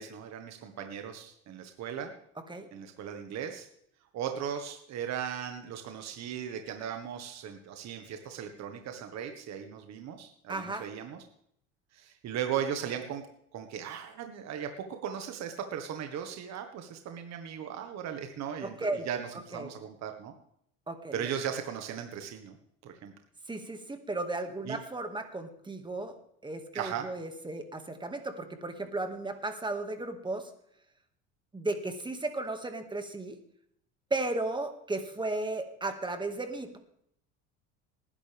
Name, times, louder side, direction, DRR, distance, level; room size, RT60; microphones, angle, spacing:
voice 1, 0.0-2.1 2.7-3.7 4.1-11.2 11.9-13.2 13.5-20.3 21.1-22.6 22.8-23.1 24.7-24.8 26.7-27.1, right 8 dB, 50° right, 5 dB, 1.7 m, -37 dB
voice 2, 10.5-10.9 18.6-19.1 19.5-19.7 20.9-21.3 23.5-26.1 26.4-30.5 31.5-33.4 34.1-36.8, right 2 dB, 15° right, 6 dB, 2.1 m, -35 dB
19.0 x 11.0 x 3.6 m, 0.71 s
supercardioid pair, 105°, 33 cm